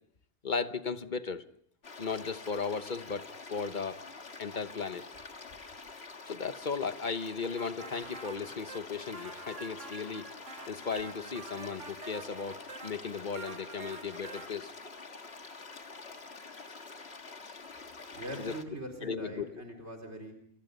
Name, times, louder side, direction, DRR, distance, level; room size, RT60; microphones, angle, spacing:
voice 1, 0.4-1.4 2.0-4.0 4.4-5.0 6.3-10.3 10.7-14.7 18.4-18.5 19.0-19.5, left 5 dB, 40° left, 10 dB, 1.2 m, -36 dB
sound 1, 1.8-18.6, left 4 dB, 60° left, 2.0 m, -47 dB
sound 2, 7.6-14.5, right 3 dB, 80° right, 2.2 m, -47 dB
voice 2, 18.1-20.3, equal, 65° right, 2 dB, 4.5 m, -42 dB
28.5 x 26.0 x 5.4 m, 0.65 s
omnidirectional pair, 1.2 m